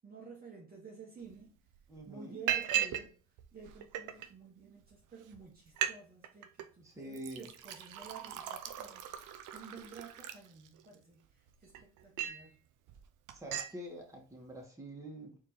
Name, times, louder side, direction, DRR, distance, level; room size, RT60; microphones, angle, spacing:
voice 1, 0.0-1.5 2.0-3.2 3.5-9.1 9.5-12.6, right 5 dB, 30° right, 1.2 m, -52 dB
Liquid, 1.3-1.4 1.7-2.0 2.5-3.1 3.4-4.3 4.9-5.0 5.3-5.4 5.7-6.0 6.2-6.7 7.1-10.9 11.5-12.5 12.9-13.0 13.3-13.7, right 10 dB, 90° right, 0.6 m, -37 dB
voice 2, 1.9-2.4 6.8-7.5 13.3-15.4, right 1 dB, 10° right, 1.5 m, -46 dB
4.3 x 3.7 x 3.1 m
cardioid pair, 90°, 30 cm